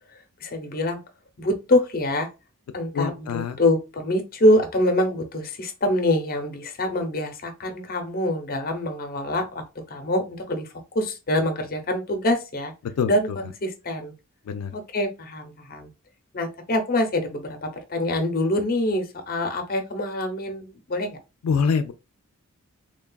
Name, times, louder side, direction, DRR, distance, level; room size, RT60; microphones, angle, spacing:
voice 1, 0.1-1.0 1.4-2.3 2.7-12.7 13.1-14.1 14.7-15.9 16.3-21.2, left 1 dB, 40° left, 0.6 m, -25 dB
voice 2, 2.9-3.6 13.0-13.1 14.5-14.7 21.4-21.9, left 6 dB, 85° left, 0.3 m, -24 dB
3.2 x 2.3 x 2.2 m
head